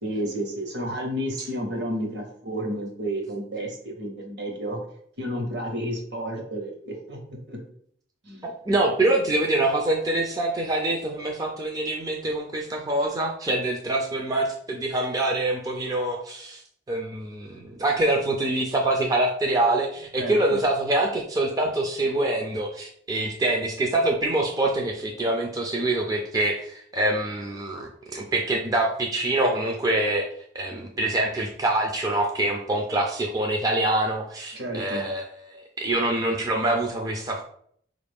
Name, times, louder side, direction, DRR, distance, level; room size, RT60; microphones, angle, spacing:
voice 1, 0.0-4.8 5.2-7.6 8.2-8.4 20.2-20.4 34.5-35.0, right 1 dB, 65° right, 1 dB, 1.1 m, -31 dB
voice 2, 8.4-16.6 16.9-30.3 30.5-37.4, right 2 dB, 20° right, 1 dB, 0.4 m, -25 dB
4.5 x 2.5 x 3.4 m, 0.63 s
head